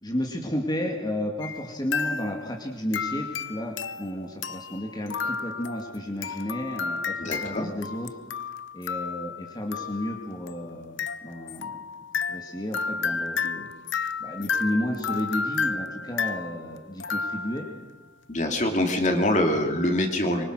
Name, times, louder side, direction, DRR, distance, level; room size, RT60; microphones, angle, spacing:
voice 1, 0.0-8.1 8.7-11.8 12.3-13.7 14.2-17.7, left 1 dB, 20° left, 1 dB, 2.4 m, -32 dB
sound 1, 1.4-1.7 1.9-2.6 2.9-17.8, left 5 dB, 65° left, 0.7 m, -32 dB
voice 2, 7.2-7.7 18.3-20.4, left 1 dB, 40° left, 3 dB, 2.8 m, -24 dB
25.5 x 23.5 x 6.3 m, 1.1 s
head